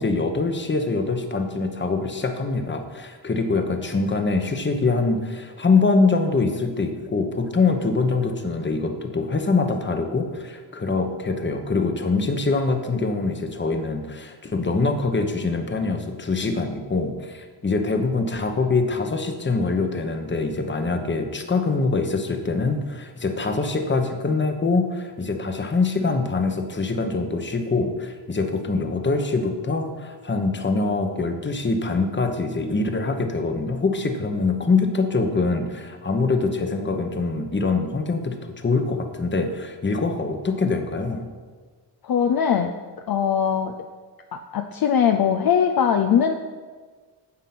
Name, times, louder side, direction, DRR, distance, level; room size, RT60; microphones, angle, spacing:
voice 1, 0.0-41.3, left 3 dB, 25° left, 6 dB, 1.0 m, -24 dB
voice 2, 42.0-42.7 43.1-43.7 44.3-46.3, left 8 dB, 50° left, 5 dB, 0.6 m, -21 dB
9.7 x 7.2 x 6.0 m, 1.5 s
wide cardioid pair, 120°, 45 cm